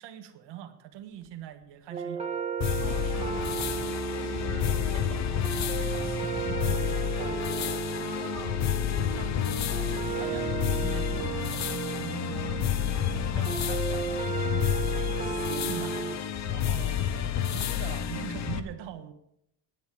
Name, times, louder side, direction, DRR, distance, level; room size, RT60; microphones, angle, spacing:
voice 1, 0.0-2.4 4.1-7.6 8.9-12.5 13.3-19.1, right 10 dB, 75° right, 7 dB, 1.6 m, -43 dB
Breathing, 0.9-1.3 1.6-1.7 2.6-2.8 3.0-4.0 4.6-5.3 5.7-6.7 7.3-8.0 8.5-9.5 10.1-10.7, right 8 dB, 35° right, 0.8 m, -46 dB
sound 1, 1.9-16.2, right 7 dB, 15° right, 1.7 m, -34 dB
sound 2, 2.6-18.6, left 10 dB, 40° left, 0.9 m, -30 dB
voice 2, 2.8-3.6 8.0-8.7 12.3-12.7, left 4 dB, 55° left, 1 dB, 3.6 m, -42 dB
17.5 x 10.5 x 3.5 m, 0.77 s
cardioid pair, 170°, 42 cm